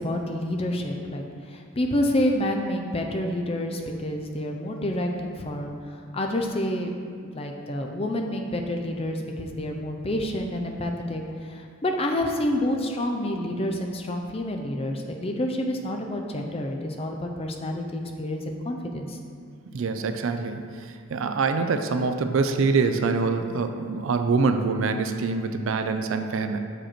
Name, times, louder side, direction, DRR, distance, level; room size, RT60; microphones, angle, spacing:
voice 1, 0.0-6.9 7.2-19.2, left 1 dB, 25° left, 3 dB, 0.4 m, -28 dB
voice 2, 19.7-20.6 21.1-26.6, right 4 dB, 65° right, 7 dB, 0.4 m, -25 dB
6.5 x 5.0 x 4.3 m, 2.2 s
head